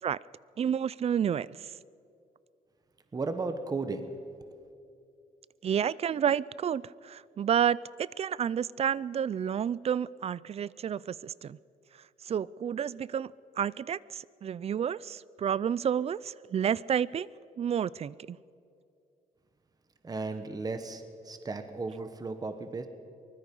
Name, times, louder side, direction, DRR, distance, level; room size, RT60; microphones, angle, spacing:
voice 1, 0.6-1.7 5.6-11.6 12.2-17.3 17.6-18.4, right 8 dB, 40° right, 21 dB, 0.4 m, -30 dB
voice 2, 3.1-4.2 20.0-22.9, right 3 dB, 25° right, 9 dB, 1.2 m, -35 dB
23.5 x 20.5 x 5.4 m, 2.5 s
cardioid pair, 115°, 15 cm